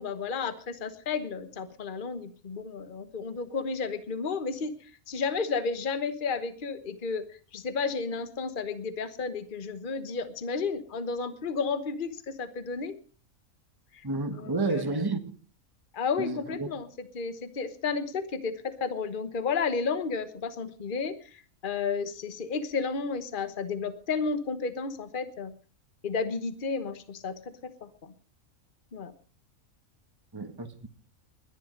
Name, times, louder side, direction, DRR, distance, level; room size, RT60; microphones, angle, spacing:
voice 1, 0.0-4.7 5.1-7.2 7.5-12.9 13.9-14.0 14.4-14.8 15.9-25.5 26.0-28.1 28.9-29.1, left 5 dB, 40° left, 1.2 m, -32 dB
voice 2, 14.0-15.2 16.2-16.7 30.3-30.9, right 3 dB, 15° right, 1.4 m, -30 dB
21.0 x 11.0 x 5.2 m
omnidirectional pair, 1.5 m